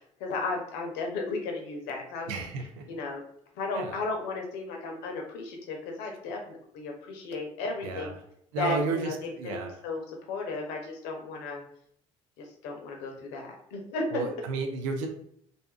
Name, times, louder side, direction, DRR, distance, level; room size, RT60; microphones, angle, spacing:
voice 1, 0.2-2.3 2.9-3.2 3.6-8.1 8.6-11.6 12.4-14.3, left 3 dB, 75° left, 2 dB, 0.6 m, -34 dB
voice 2, 2.3-2.9 3.7-4.0 7.8-8.1 8.5-9.7 14.1-15.1, right 4 dB, 85° right, 4 dB, 0.4 m, -32 dB
2.6 x 2.3 x 2.3 m, 0.68 s
hypercardioid pair, 55°, 16 cm